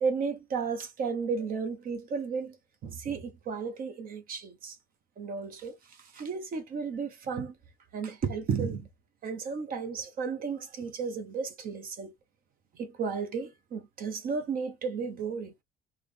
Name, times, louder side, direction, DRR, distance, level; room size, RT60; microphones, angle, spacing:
voice 1, 0.0-2.6 2.8-4.8 5.2-5.8 6.1-7.5 7.9-8.9 9.2-12.1 12.8-15.5, right 5 dB, 60° right, 1.1 m, -33 dB
3.5 x 2.4 x 3.5 m
cardioid pair, 110°, 17 cm